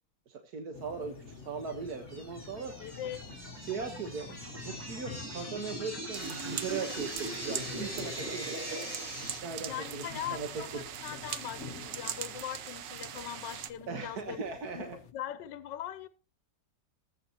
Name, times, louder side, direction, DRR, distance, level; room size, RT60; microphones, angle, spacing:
voice 1, 0.3-2.7 3.6-8.6 8.8-8.9 9.4-10.5 10.7-10.8 13.9-15.0, right 5 dB, 60° right, 1.8 m, -39 dB
sound 1, 0.7-15.1, left 5 dB, 45° left, 1.1 m, -49 dB
sound 2, 1.6-9.4, right 1 dB, 10° right, 3.7 m, -41 dB
voice 2, 2.8-3.2 9.6-14.4 14.7-16.1, left 11 dB, 80° left, 1.4 m, -41 dB
sound 3, 6.1-13.7, right 9 dB, 80° right, 1.6 m, -41 dB
20.0 x 8.3 x 2.9 m
omnidirectional pair, 1.9 m